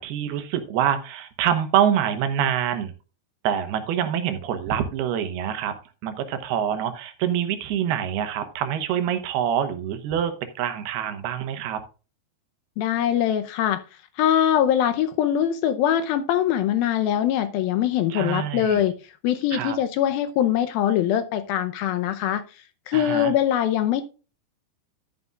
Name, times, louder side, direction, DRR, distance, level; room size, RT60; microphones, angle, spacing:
voice 1, 0.0-2.9 3.4-5.7 6.0-11.8 18.1-18.8 19.5-19.8 22.9-23.3, right 9 dB, 80° right, 9 dB, 3.0 m, -25 dB
voice 2, 12.8-13.8 14.2-19.0 19.2-22.4 22.9-24.0, left 10 dB, 75° left, 9 dB, 2.4 m, -22 dB
11.5 x 9.4 x 2.4 m, 0.33 s
omnidirectional pair, 4.6 m